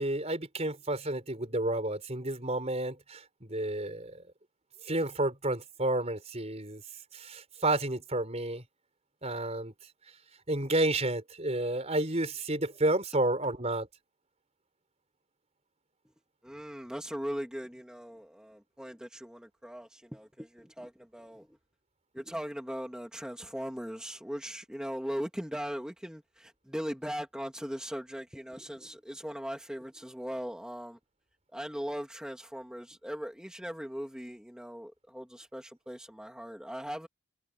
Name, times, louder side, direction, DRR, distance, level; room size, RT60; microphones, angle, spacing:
voice 1, 0.0-4.2 4.9-6.8 7.1-8.6 9.2-9.7 10.5-13.9, right 1 dB, 30° right, 5.2 m, -31 dB
voice 2, 16.4-21.6 22.1-31.0 31.5-37.1, equal, 5° right, 2.8 m, -39 dB
head